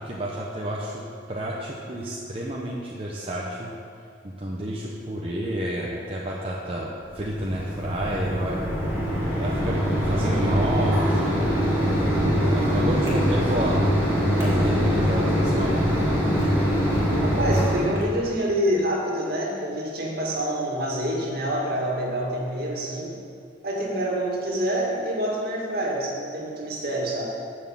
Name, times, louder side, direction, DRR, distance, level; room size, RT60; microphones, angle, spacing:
voice 1, 0.0-3.7 4.2-8.6 9.4-11.4 12.4-13.9 14.4-15.8, right 1 dB, 30° right, -4 dB, 0.9 m, -30 dB
Mechanisms, 7.1-18.0, equal, 15° right, 2.6 m, -23 dB
voice 2, 12.6-13.1 17.2-23.1 23.6-27.2, right 1 dB, 50° right, -2 dB, 2.2 m, -27 dB
11.0 x 6.5 x 7.5 m, 2.4 s
head